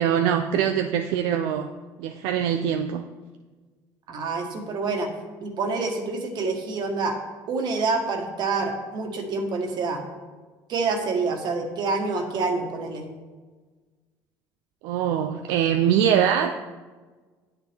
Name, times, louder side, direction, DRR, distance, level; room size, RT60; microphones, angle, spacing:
voice 1, 0.0-1.7 2.0-3.0 14.8-16.6, right 9 dB, 80° right, 6 dB, 0.4 m, -23 dB
voice 2, 4.1-5.1 5.4-7.2 7.5-10.0 10.7-13.1, right 3 dB, 55° right, 3 dB, 1.6 m, -27 dB
9.4 x 8.2 x 3.5 m, 1.4 s
supercardioid pair, 95°, 9 cm